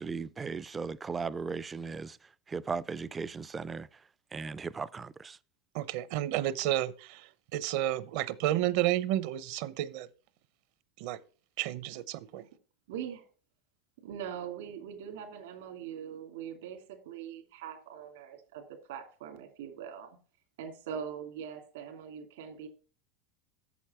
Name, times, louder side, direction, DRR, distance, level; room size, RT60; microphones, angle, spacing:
voice 1, 0.0-2.2 2.5-3.9 4.3-5.4, right 5 dB, 15° right, 0.3 m, -37 dB
voice 2, 5.7-10.1 11.0-11.2 11.6-12.5, right 14 dB, 55° right, 0.7 m, -31 dB
voice 3, 12.9-13.2 14.0-18.6 18.9-20.2 20.6-22.7, right 8 dB, 80° right, 2.7 m, -42 dB
8.4 x 7.3 x 4.3 m
supercardioid pair, 170°, 0 cm